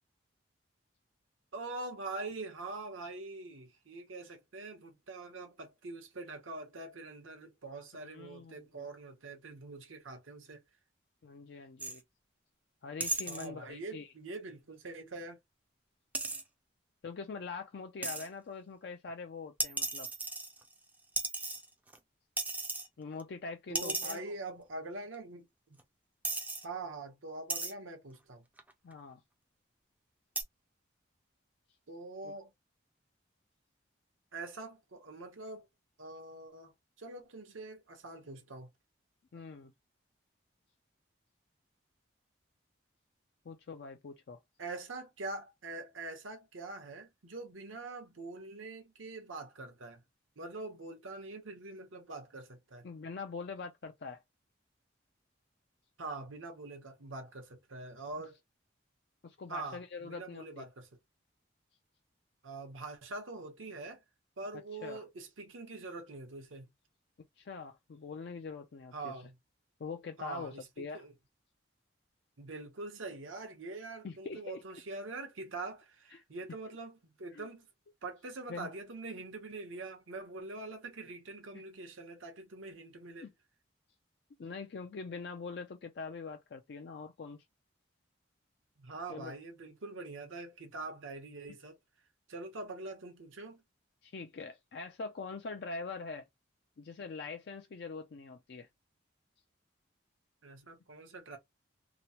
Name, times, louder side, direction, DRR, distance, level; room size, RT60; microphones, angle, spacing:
voice 1, 1.5-10.6 13.3-15.4 21.3-21.5 23.7-25.8 26.6-28.4 31.9-32.5 34.3-35.7 36.0-36.7 37.0-38.7 44.6-50.0 50.4-52.9 56.0-58.4 59.5-60.9 62.4-64.0 64.4-66.7 68.9-69.4 70.2-71.1 72.4-77.7 78.0-83.3 88.8-91.8 92.3-93.6 100.4-101.4, right 3 dB, 85° right, 0.9 m, -44 dB
voice 2, 8.0-8.8 11.2-12.0 12.8-14.1 17.0-20.1 23.0-24.3 28.8-29.2 32.2-32.3 39.3-39.7 43.5-44.4 52.8-54.2 59.2-60.6 64.8-65.0 67.4-69.1 69.8-71.0 74.0-74.6 76.1-76.2 77.3-77.5 78.5-78.7 81.5-81.6 83.2-83.3 84.4-87.4 89.1-89.3 94.0-96.2 96.8-98.7, left 4 dB, 55° left, 0.4 m, -43 dB
sound 1, 11.8-12.0 13.0-13.5 16.1-16.4 18.0-18.3 19.6-20.8 21.2-22.0 22.4-22.9 23.2-23.3 23.7-24.2 25.1-25.2 25.8-25.9 26.2-26.6 27.5-27.7 28.6-28.9 30.4-30.5, right 3 dB, 10° right, 0.4 m, -35 dB
2.9 x 2.0 x 2.8 m
head